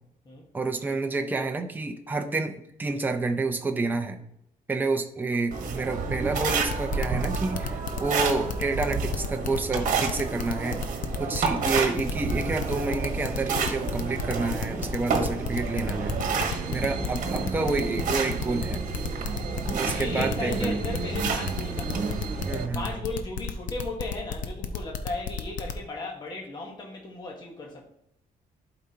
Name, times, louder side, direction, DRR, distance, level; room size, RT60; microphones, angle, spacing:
voice 1, 0.5-4.2 4.7-10.8 11.2-16.2 16.7-18.8 19.7-20.8 22.5-23.0, right 3 dB, 10° right, 4 dB, 0.6 m, -29 dB
sound 1, 5.5-22.7, right 5 dB, 60° right, 1.2 m, -30 dB
sound 2, 6.6-25.8, left 8 dB, 60° left, 0.7 m, -33 dB
sound 3, 16.4-22.6, right 9 dB, 75° right, 0.7 m, -46 dB
voice 2, 19.4-22.1 22.7-27.8, left 2 dB, 25° left, 0 dB, 1.1 m, -36 dB
11.5 x 4.9 x 2.8 m, 0.79 s
cardioid pair, 180°, 15 cm